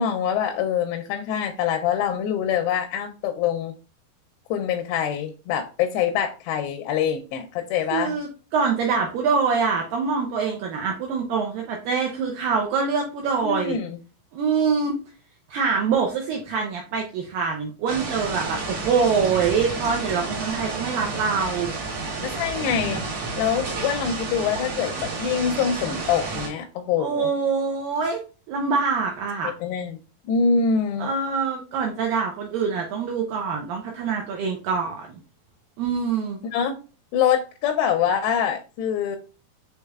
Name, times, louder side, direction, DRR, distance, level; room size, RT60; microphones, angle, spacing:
voice 1, 0.0-3.7 4.5-8.2 13.4-14.0 22.2-23.0 23.4-27.3 29.4-30.0 30.3-31.1 36.5-36.8 37.1-39.2, left 7 dB, 85° left, 5 dB, 2.6 m, -25 dB
voice 2, 7.9-13.8 14.3-15.0 15.5-21.7 27.0-28.2 28.5-29.5 31.0-35.2 35.8-36.4, right 5 dB, 90° right, 2 dB, 2.0 m, -25 dB
sound 1, 17.9-26.5, right 3 dB, 70° right, 1.3 m, -31 dB
6.4 x 3.3 x 2.3 m, 0.35 s
omnidirectional pair, 4.7 m